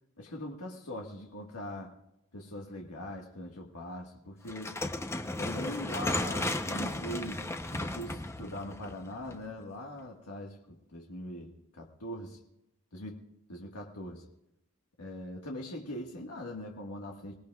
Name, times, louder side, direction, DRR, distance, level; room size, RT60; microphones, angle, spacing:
voice 1, 0.2-2.0 2.3-4.8 5.4-12.4 12.9-14.3 15.0-17.3, left 1 dB, 85° left, 0 dB, 1.6 m, -41 dB
sound 1, 4.5-9.6, left 1 dB, 10° left, 0.7 m, -35 dB
26.0 x 19.0 x 2.4 m, 0.86 s
head